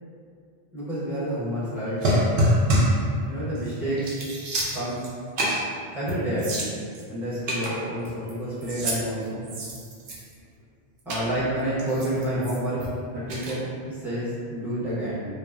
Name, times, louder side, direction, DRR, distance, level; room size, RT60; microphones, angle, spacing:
voice 1, 0.7-2.1 3.3-4.1 4.7-5.1 5.9-6.8 7.1-9.5 11.0-12.8 13.1-15.3, right 1 dB, ahead, -12 dB, 0.7 m, -29 dB
sound 1, 2.0-3.0 3.6-3.7 4.0-5.1 5.4-5.7 6.1-6.2 6.4-7.0 7.5-8.3 8.6-9.0 9.4-10.4 11.1-11.2 11.8-12.9 13.3-13.5, equal, 60° right, 0.7 m, -25 dB
2.9 x 2.0 x 2.3 m, 2.3 s
omnidirectional pair, 1.1 m